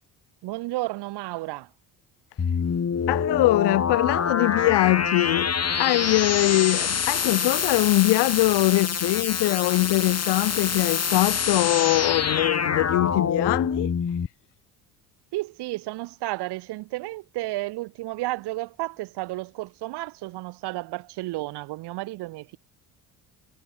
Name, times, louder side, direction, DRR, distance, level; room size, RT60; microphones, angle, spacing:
voice 1, 0.4-1.7 15.3-22.6, right 19 dB, 75° right, 3.0 m, -32 dB
sound 1, 2.4-14.3, left 6 dB, 40° left, 5.6 m, -26 dB
voice 2, 3.1-13.9, left 20 dB, 75° left, 5.8 m, -22 dB
supercardioid pair, 70°, 41 cm